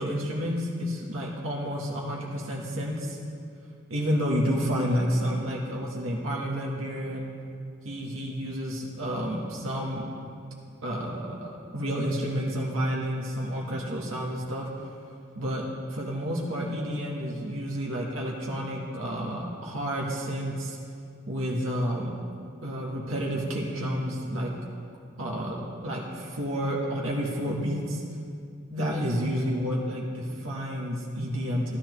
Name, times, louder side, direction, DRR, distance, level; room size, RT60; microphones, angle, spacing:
voice 1, 0.0-3.2 3.9-7.3 7.8-10.1 10.8-14.7 15.3-20.8 21.3-22.1 22.6-24.5 25.2-25.6 25.8-28.0 28.7-31.8, equal, 80° right, -2 dB, 1.4 m, -30 dB
13.0 x 13.0 x 3.2 m, 2.4 s
head